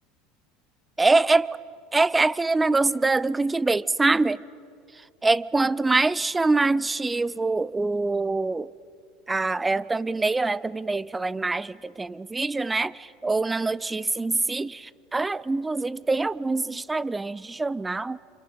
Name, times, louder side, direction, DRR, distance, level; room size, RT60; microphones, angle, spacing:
voice 1, 1.0-1.6 1.9-4.4 5.2-8.7 9.3-18.2, right 3 dB, 15° right, 0.6 m, -24 dB
28.0 x 27.5 x 5.4 m
hypercardioid pair, 85°, 0 cm